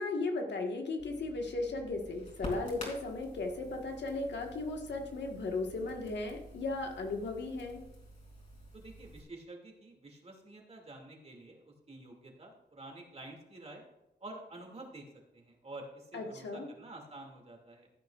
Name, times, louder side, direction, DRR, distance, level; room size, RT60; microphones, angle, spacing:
voice 1, 0.0-7.8 16.1-16.7, left 3 dB, 90° left, 2 dB, 1.7 m, -36 dB
Crackle, 1.0-9.2, equal, 45° left, 3.8 m, -49 dB
voice 2, 8.7-13.8 14.2-15.0 15.3-17.9, right 2 dB, 35° right, 1 dB, 2.6 m, -49 dB
15.0 x 9.0 x 2.5 m, 0.96 s
wide cardioid pair, 135°, 18 cm